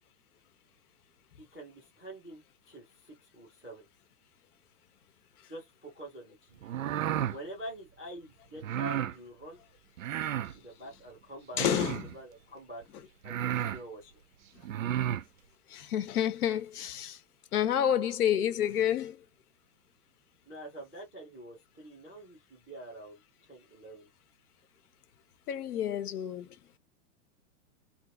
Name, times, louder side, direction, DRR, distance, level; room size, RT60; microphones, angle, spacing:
voice 1, 1.4-3.9 5.5-6.7 7.0-9.6 10.6-12.8 13.2-14.0 20.4-23.2 23.5-24.1, right 1 dB, 5° left, 0.6 m, -46 dB
sound 1, 6.6-7.4 8.6-9.1 10.0-10.5 11.5-12.1 12.8-12.9 13.2-13.8 14.6-15.2, right 11 dB, 60° right, 0.5 m, -32 dB
voice 2, 11.6-12.2 15.7-17.2 17.5-19.2 25.5-26.5, left 10 dB, 70° left, 0.7 m, -29 dB
2.8 x 2.4 x 3.4 m
hypercardioid pair, 180°, 47 cm